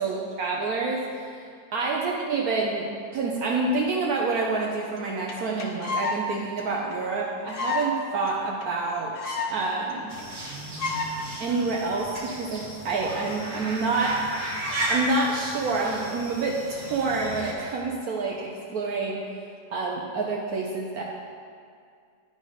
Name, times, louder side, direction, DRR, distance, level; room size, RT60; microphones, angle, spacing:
voice 1, 0.0-10.1 11.4-14.2 14.9-19.2 19.7-21.0, right 3 dB, 70° right, -2 dB, 1.2 m, -28 dB
sound 1, 5.0-5.1 5.3-5.4 5.6-6.2 6.6-6.7 6.9-7.0 7.5-7.9 8.3-8.4 8.6-8.7 8.9-9.6 9.9-10.0 10.2-10.5 10.8-11.1 11.7-12.0, left 4 dB, 50° left, 0.7 m, -30 dB
sound 2, 10.1-17.5, right 1 dB, 30° right, 1.1 m, -34 dB
11.0 x 4.0 x 4.9 m, 2.2 s
omnidirectional pair, 1.8 m